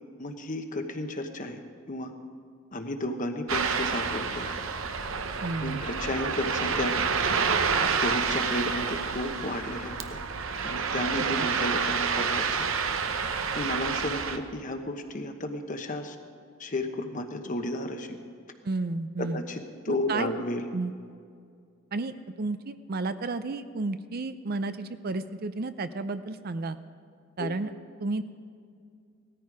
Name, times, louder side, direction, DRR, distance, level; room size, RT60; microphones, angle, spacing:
voice 1, 0.2-1.6 1.9-2.1 2.7-4.6 5.6-7.0 7.8-10.2 10.6-12.7 13.5-16.2 16.6-18.2 19.2-20.6 27.4-27.5, left 1 dB, 40° left, 6 dB, 1.1 m, -33 dB
Ocean, 3.5-14.4, right 5 dB, 75° right, 0.9 m, -28 dB
voice 2, 5.4-5.8 11.2-11.3 18.6-19.4 19.9-20.3 20.7-20.9 21.9-26.8 27.4-27.7 28.0-28.2, right 3 dB, 50° right, 11 dB, 0.5 m, -32 dB
17.5 x 13.5 x 4.8 m, 2.2 s
head